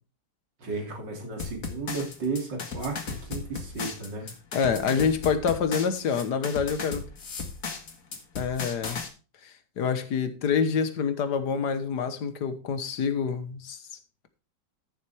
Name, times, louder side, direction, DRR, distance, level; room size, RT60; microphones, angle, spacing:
voice 1, 0.6-4.3, right 3 dB, 80° right, 3.4 m, -34 dB
sound 1, 1.4-9.1, left 5 dB, 50° left, 2.0 m, -36 dB
voice 2, 4.5-7.1 8.4-9.0 9.4-13.8, left 6 dB, 70° left, 1.7 m, -27 dB
13.5 x 7.2 x 3.4 m
omnidirectional pair, 1.9 m